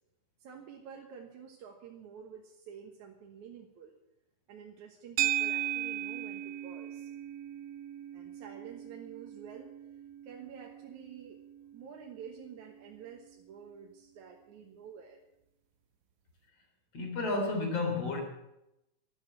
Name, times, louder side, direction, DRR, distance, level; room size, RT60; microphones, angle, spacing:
voice 1, 0.4-3.9 4.5-7.1 8.1-9.7 10.2-11.4 11.7-15.2, right 7 dB, 65° right, 0 dB, 2.6 m, -49 dB
sound 1, 5.2-13.6, right 13 dB, 85° right, 2.4 m, -38 dB
voice 2, 16.9-18.2, left 3 dB, 50° left, 2 dB, 4.3 m, -31 dB
12.5 x 12.5 x 7.4 m, 0.87 s
omnidirectional pair, 3.8 m